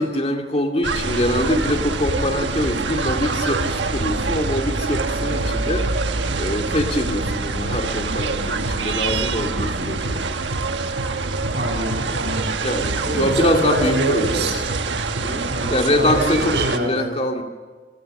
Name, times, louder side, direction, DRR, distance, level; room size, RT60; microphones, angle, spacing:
voice 1, 0.0-5.9 6.4-10.2 12.6-14.5 15.2-16.6 16.8-17.4, left 1 dB, 35° left, 3 dB, 2.3 m, -24 dB
sound 1, 0.8-16.8, right 3 dB, 85° right, 1.3 m, -25 dB
voice 2, 11.5-12.6 13.0-14.7 15.5-17.1, right 1 dB, 65° right, 0 dB, 7.9 m, -25 dB
27.5 x 22.5 x 6.6 m, 1.4 s
head